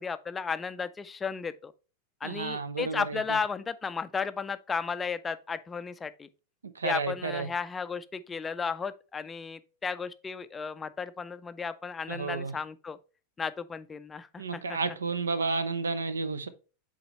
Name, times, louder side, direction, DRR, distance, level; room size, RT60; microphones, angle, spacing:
voice 1, 0.0-1.7 2.2-6.3 6.8-13.0 13.4-14.8, left 5 dB, 15° left, 0.4 m, -34 dB
voice 2, 2.2-3.4 6.8-7.5 12.1-12.5 14.4-16.5, right 4 dB, 70° right, 0.5 m, -31 dB
7.7 x 4.1 x 3.0 m
figure-of-eight pair, 90°, 0 cm